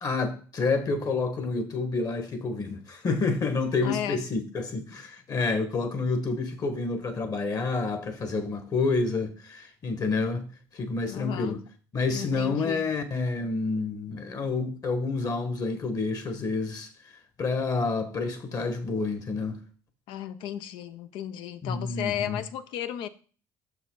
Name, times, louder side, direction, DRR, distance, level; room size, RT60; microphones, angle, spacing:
voice 1, 0.0-10.4 10.7-11.6 11.9-16.9 17.4-19.6 21.6-22.4, left 3 dB, 45° left, 1.6 m, -29 dB
voice 2, 3.8-4.2 11.1-11.6 12.1-12.9 20.1-23.1, left 11 dB, 75° left, 0.7 m, -34 dB
6.5 x 5.7 x 4.0 m
supercardioid pair, 70°, 8 cm